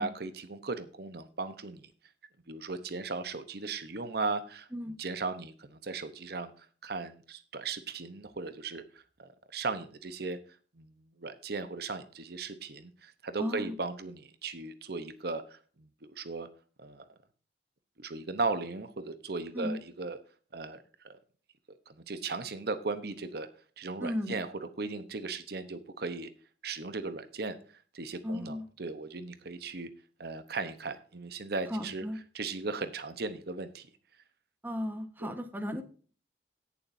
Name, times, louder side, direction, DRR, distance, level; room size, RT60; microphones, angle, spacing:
voice 1, 0.0-1.9 2.5-4.7 5.0-8.8 9.2-10.4 10.8-16.5 16.8-17.1 18.0-20.2 20.5-21.2 21.9-23.5 23.8-26.3 26.6-27.6 27.9-29.9 30.2-32.0 32.3-33.9 35.2-35.3, right 3 dB, 60° right, 11 dB, 1.0 m, -37 dB
voice 2, 13.4-13.8 19.5-19.8 24.0-24.4 28.2-28.7 31.7-32.2 34.6-35.8, left 1 dB, 10° right, 7 dB, 1.3 m, -35 dB
17.5 x 7.2 x 2.7 m, 0.40 s
head